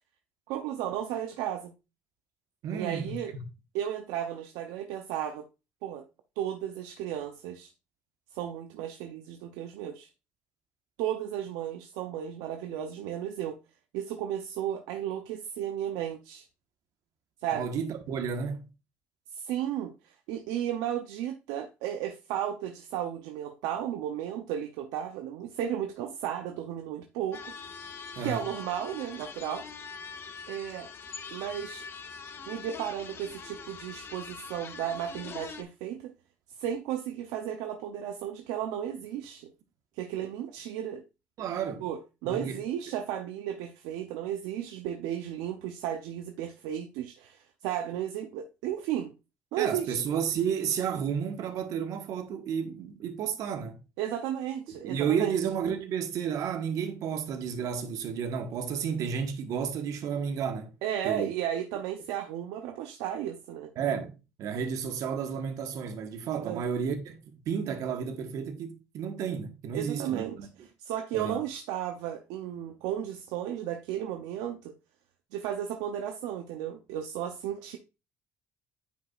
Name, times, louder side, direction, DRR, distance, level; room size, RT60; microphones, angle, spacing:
voice 1, 0.5-1.7 2.7-3.3 3.7-5.4 5.8-6.1 6.4-7.7 8.3-10.1 11.0-13.6 13.9-16.5 17.4-17.7 19.3-27.5 28.2-29.7 30.5-30.9 31.3-31.9 32.5-36.1 36.6-39.5 40.0-41.0 41.8-49.1 49.5-50.0 54.0-55.4 60.8-63.7 66.4-66.6 69.7-74.7 75.3-77.8, right 10 dB, 85° right, 0.6 m, -34 dB
voice 2, 2.6-3.2 17.5-18.7 28.1-28.4 41.4-41.8 42.2-42.6 49.6-53.8 54.8-60.7 61.0-61.3 63.8-70.5 71.1-71.4, right 7 dB, 65° right, 1.3 m, -32 dB
sound 1, 27.3-35.6, left 5 dB, 40° left, 0.9 m, -43 dB
9.1 x 5.1 x 2.4 m
supercardioid pair, 85°, 6 cm